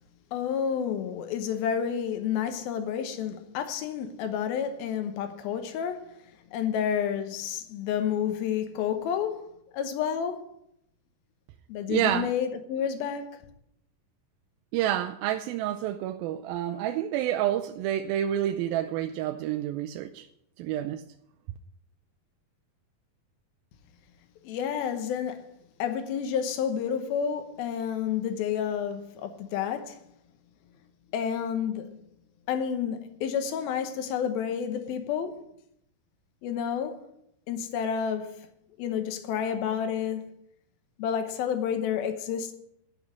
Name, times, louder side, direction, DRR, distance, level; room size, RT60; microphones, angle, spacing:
voice 1, 0.3-6.0 6.5-9.4 9.7-10.4 11.7-13.3 24.4-25.4 25.8-30.0 31.1-31.9 32.5-35.4 36.4-37.0 37.5-38.4 38.8-40.3 41.0-42.5, left 8 dB, 90° left, 2.9 m, -30 dB
voice 2, 11.9-12.3 14.7-20.3 20.6-21.0, right 11 dB, 90° right, 2.4 m, -29 dB
11.5 x 6.3 x 9.4 m
omnidirectional pair, 4.1 m